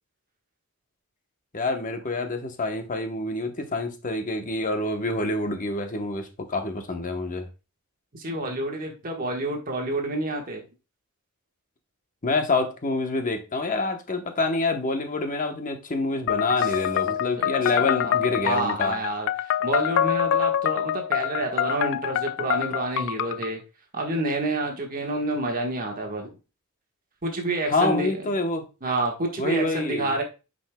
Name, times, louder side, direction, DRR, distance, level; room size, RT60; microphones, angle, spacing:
voice 1, 1.5-7.5 12.2-19.0 27.7-28.7 29.4-30.1, left 2 dB, 35° left, 1.0 m, -27 dB
voice 2, 8.1-10.6 17.4-17.5 17.8-18.1 18.4-23.6 23.9-26.4 27.2-28.2 28.8-30.2, right 2 dB, 40° right, 1.4 m, -28 dB
sound 1, 16.3-23.5, left 10 dB, 55° left, 0.3 m, -26 dB
9.4 x 5.2 x 2.2 m
head